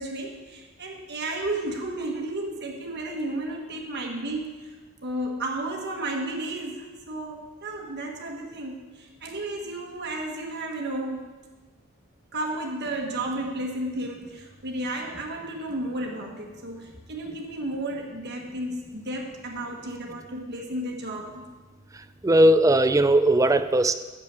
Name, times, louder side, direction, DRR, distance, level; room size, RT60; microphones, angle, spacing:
voice 1, 0.0-4.7 5.0-11.3 12.3-21.5, right 1 dB, 55° right, 1 dB, 1.4 m, -33 dB
voice 2, 22.2-23.9, right 1 dB, 15° right, 11 dB, 0.4 m, -18 dB
8.4 x 6.8 x 8.0 m, 1.3 s
head